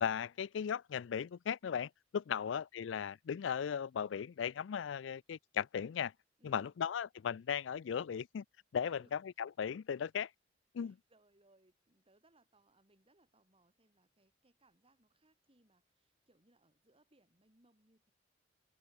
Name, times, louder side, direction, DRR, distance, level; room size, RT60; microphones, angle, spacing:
voice 1, 0.0-6.1 6.4-8.4 8.7-10.3 10.7-11.0, left 7 dB, 75° left, 0.4 m, -37 dB
voice 2, 2.3-2.6 6.4-6.7 8.8-9.2 10.8-18.1, right 1 dB, 30° right, 4.9 m, -70 dB
head